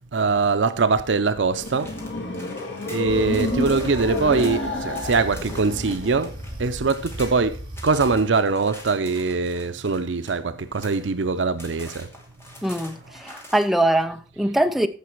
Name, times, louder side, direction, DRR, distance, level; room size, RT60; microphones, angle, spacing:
voice 1, 0.1-1.9 2.9-6.3 6.6-12.1, right 4 dB, 85° right, 0.6 m, -22 dB
sound 1, 1.2-6.6, left 2 dB, 70° left, 2.6 m, -29 dB
sound 2, 1.6-6.5 6.8-7.3 7.7-11.2 11.6-13.7, left 1 dB, 15° left, 2.6 m, -44 dB
sound 3, 3.0-8.2, equal, 30° right, 6.7 m, -37 dB
voice 2, 12.6-14.9, right 1 dB, ahead, 0.7 m, -22 dB
15.0 x 5.9 x 4.5 m
head